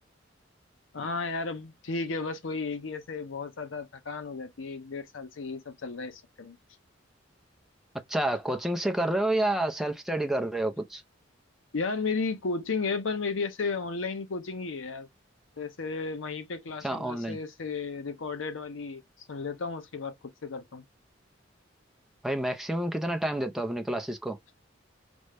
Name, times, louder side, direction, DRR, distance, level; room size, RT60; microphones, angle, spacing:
voice 1, 0.9-6.6 11.7-15.1 15.6-19.0 19.3-20.1 20.4-20.8, left 4 dB, 85° left, 0.7 m, -34 dB
voice 2, 8.1-11.0 16.8-17.4 22.2-24.4, right 1 dB, ahead, 0.4 m, -29 dB
5.2 x 2.1 x 3.2 m
head